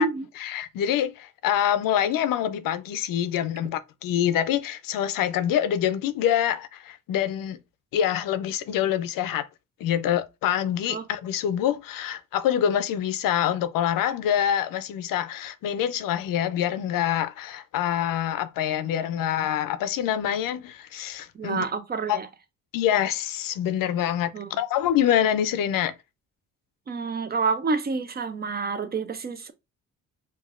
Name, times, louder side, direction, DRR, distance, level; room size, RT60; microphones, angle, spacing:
voice 1, 0.4-7.6 7.9-9.4 9.8-21.7 22.1-22.2 22.7-24.3 24.6-25.9, left 10 dB, 80° left, 0.5 m, -25 dB
voice 2, 21.3-22.3 24.3-24.5 26.9-29.5, right 4 dB, 30° right, 0.4 m, -28 dB
5.0 x 2.4 x 2.4 m
cardioid pair, 110°, 33 cm